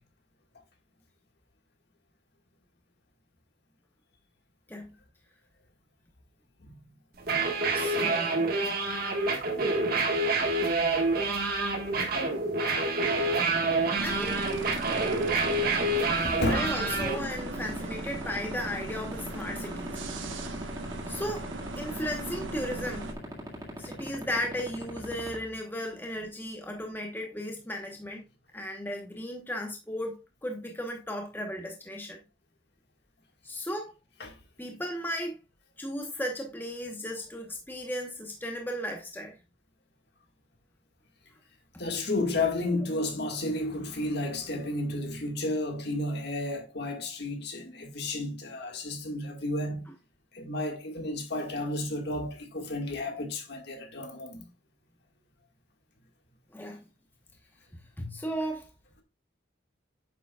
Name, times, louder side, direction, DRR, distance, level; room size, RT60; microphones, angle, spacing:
sound 1, 7.2-17.2, right 3 dB, 50° right, 1.5 m, -27 dB
voice 1, 7.7-8.5 14.0-14.4 16.5-20.4 21.1-21.5 21.8-23.1 23.8-28.2 28.5-32.2 33.4-33.9 34.6-35.4 35.8-39.3 56.5-56.8 58.0-58.7, equal, 10° left, 1.0 m, -35 dB
sound 2, 13.0-25.3, equal, 20° right, 1.9 m, -37 dB
sound 3, 14.0-23.1, right 2 dB, 85° right, 1.2 m, -38 dB
voice 2, 16.2-16.7 23.6-24.0 34.2-34.4 41.8-49.9 50.3-54.4, left 2 dB, 55° left, 1.8 m, -32 dB
9.0 x 6.8 x 2.3 m
head